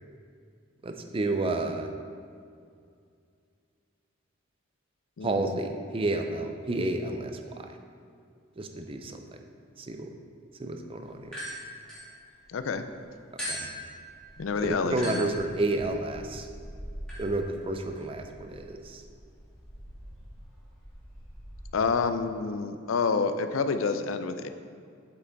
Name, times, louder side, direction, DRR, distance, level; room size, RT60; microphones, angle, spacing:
voice 1, 0.8-1.9 5.2-7.4 8.6-9.2 9.8-10.1 10.6-11.3 13.5-13.7 14.6-16.5 17.2-19.0, right 2 dB, 30° right, 5 dB, 0.5 m, -30 dB
voice 2, 5.2-5.6 12.5-12.8 14.4-15.3 21.7-24.5, left 4 dB, 90° left, 9 dB, 0.5 m, -28 dB
sound 1, 11.2-12.7 13.4-21.7, equal, 5° left, 1.8 m, -42 dB
7.9 x 5.8 x 3.9 m, 2.3 s
head